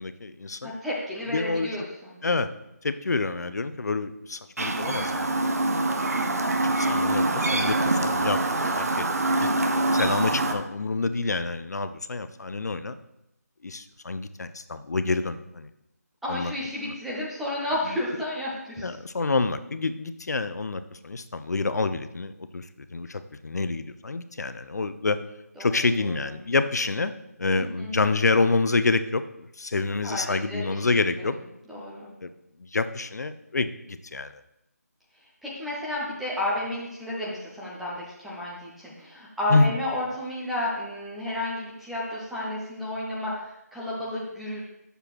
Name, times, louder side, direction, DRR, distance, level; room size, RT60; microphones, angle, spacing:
voice 1, 0.0-0.8 1.3-1.8 2.2-2.5 2.8-5.5 6.6-8.4 8.8-9.1 9.4-9.5 9.9-13.0 13.6-15.7 16.3-16.5 18.8-22.7 22.9-25.2 25.6-27.1 27.4-31.3 32.2-32.3 32.6-34.3 39.5-39.7, left 3 dB, 75° left, 11 dB, 0.5 m, -27 dB
voice 2, 0.6-2.2 16.2-18.9 25.6-26.2 27.5-27.9 30.0-30.9 31.2-31.3 31.7-32.1 35.4-44.6, left 1 dB, ahead, -7 dB, 0.3 m, -32 dB
Chirp tweet, 4.6-10.5, right 2 dB, 60° right, 0.8 m, -25 dB
7.8 x 6.7 x 2.9 m, 0.84 s
figure-of-eight pair, 165°, 9 cm